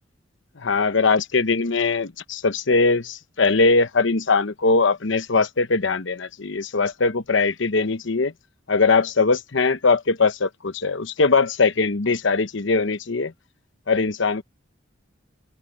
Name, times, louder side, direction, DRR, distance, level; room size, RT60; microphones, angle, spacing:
voice 1, 0.6-8.3 8.7-13.3 13.9-14.4, left 4 dB, 75° left, 1.0 m, -21 dB
head